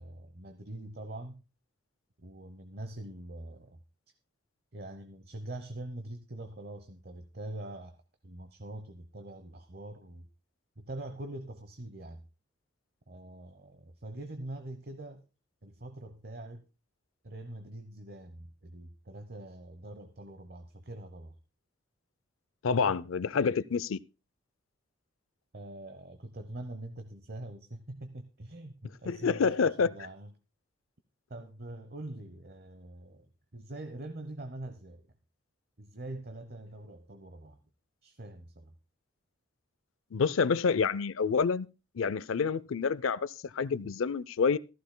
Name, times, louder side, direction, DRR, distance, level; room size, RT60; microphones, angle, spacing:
voice 1, 0.0-1.4 2.2-3.8 4.7-8.0 8.2-10.2 10.8-12.3 13.1-15.2 15.6-16.6 17.2-21.4 25.5-30.3 31.3-35.1 35.8-37.6 38.0-38.7, right 1 dB, 50° right, 0.9 m, -44 dB
voice 2, 22.6-24.0 29.1-29.9 40.1-41.7 42.0-44.6, left 5 dB, 85° left, 0.5 m, -28 dB
15.5 x 14.5 x 2.2 m
head